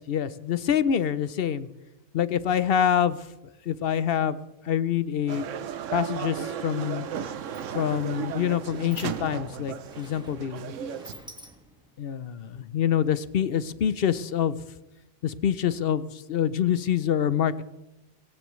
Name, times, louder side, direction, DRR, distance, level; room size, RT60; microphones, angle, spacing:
voice 1, 0.0-1.7 2.1-3.3 3.7-5.5 5.9-7.1 7.7-10.7 12.0-14.6 15.2-17.6, left 9 dB, 60° left, 15 dB, 0.8 m, -26 dB
sound 1, 5.3-11.1, right 8 dB, 90° right, 1.1 m, -35 dB
Sliding door, 7.3-12.0, equal, 5° right, 1.5 m, -50 dB
19.0 x 17.5 x 3.2 m, 0.98 s
omnidirectional pair, 1.2 m